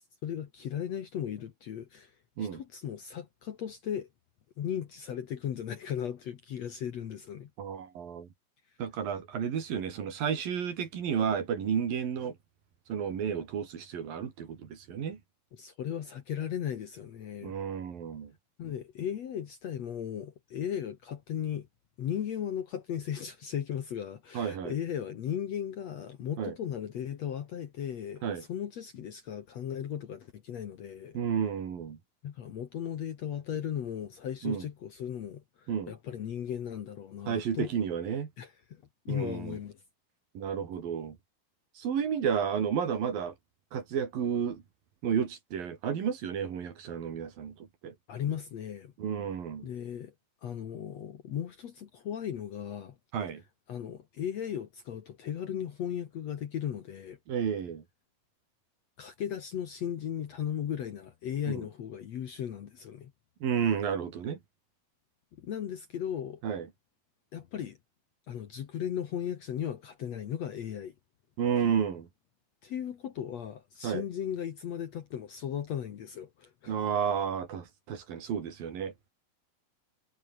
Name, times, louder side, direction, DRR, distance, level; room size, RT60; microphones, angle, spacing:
voice 1, 0.2-2.1 2.4-4.1 4.6-7.5 15.5-17.6 18.6-21.7 22.0-31.2 32.2-37.7 38.4-39.8 48.1-48.9 49.6-50.1 50.4-53.0 53.7-57.2 59.0-63.1 65.4-66.4 67.3-67.8 68.3-70.9 72.6-76.7, left 9 dB, 55° left, 2.1 m, -36 dB
voice 2, 7.6-8.3 8.8-12.4 12.9-15.2 17.4-18.3 24.3-24.8 26.4-26.5 28.2-28.4 31.1-32.0 34.4-34.6 35.7-35.9 37.3-38.3 39.1-39.6 40.3-41.2 41.8-43.3 43.7-44.6 45.0-47.9 49.0-49.7 53.1-53.4 57.3-57.8 61.5-61.7 63.4-64.4 66.4-66.7 71.4-72.1 73.8-74.0 76.7-78.9, right 7 dB, 65° right, 4.6 m, -32 dB
omnidirectional pair, 4.4 m